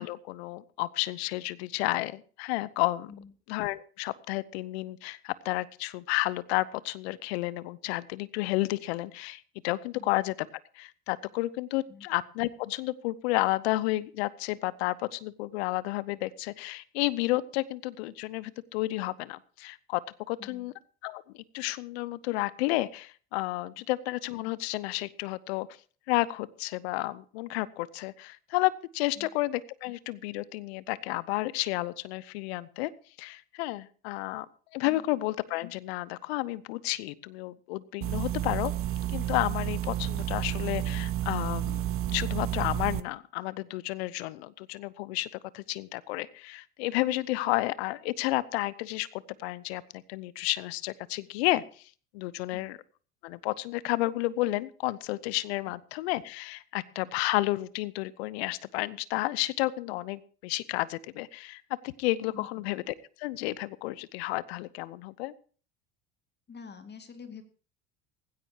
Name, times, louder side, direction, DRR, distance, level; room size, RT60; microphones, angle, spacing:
voice 1, 0.0-3.1 3.5-10.5 10.8-20.0 20.3-20.7 21.0-25.7 26.1-32.9 33.2-34.5 34.7-38.7 39.1-41.9 42.1-45.3 45.5-51.6 52.1-52.8 53.2-65.3, left 18 dB, 70° left, 20 dB, 0.8 m, -31 dB
voice 2, 20.4-20.7 29.2-29.3 34.8-35.1 52.5-52.6 55.7-55.8 62.3-62.5 66.5-67.4, left 6 dB, 30° left, 8 dB, 2.3 m, -47 dB
sound 1, 38.0-43.0, right 12 dB, 40° right, 0.8 m, -31 dB
17.5 x 16.0 x 2.9 m, 0.41 s
hypercardioid pair, 70°, 33 cm